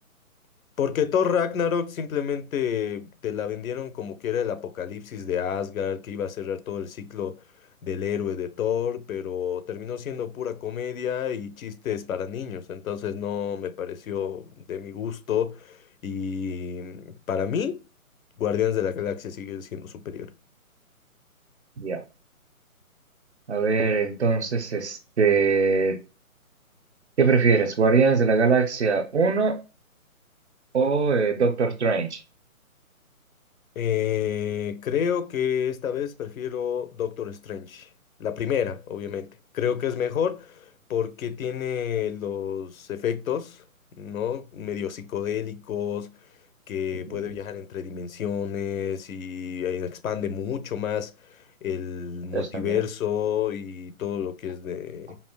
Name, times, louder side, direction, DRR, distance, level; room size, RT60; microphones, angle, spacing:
voice 1, 0.8-7.4 7.8-17.8 18.4-20.3 33.8-37.9 38.2-43.6 43.9-46.2 46.7-55.2, left 8 dB, 70° left, 0.6 m, -29 dB
voice 2, 23.5-26.0 27.2-29.6 30.7-32.2 47.1-47.3 52.3-52.8, right 4 dB, 50° right, 0.6 m, -22 dB
5.5 x 2.4 x 2.2 m
hypercardioid pair, 170°, 43 cm